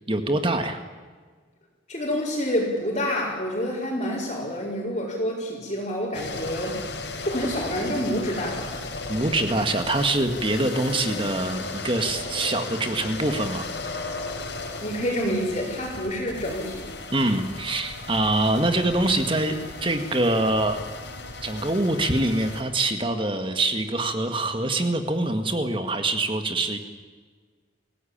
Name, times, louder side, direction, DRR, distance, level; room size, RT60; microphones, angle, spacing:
voice 1, 0.1-0.8 9.1-13.7 17.1-19.6 19.8-20.8 21.4-26.8, right 2 dB, 25° right, 7 dB, 1.9 m, -24 dB
voice 2, 1.9-6.8 7.2-8.8 14.8-16.9, equal, 35° left, -6 dB, 5.2 m, -28 dB
sound 1, 6.1-22.6, left 3 dB, 65° left, 4.3 m, -35 dB
28.5 x 17.5 x 8.9 m, 1.5 s
head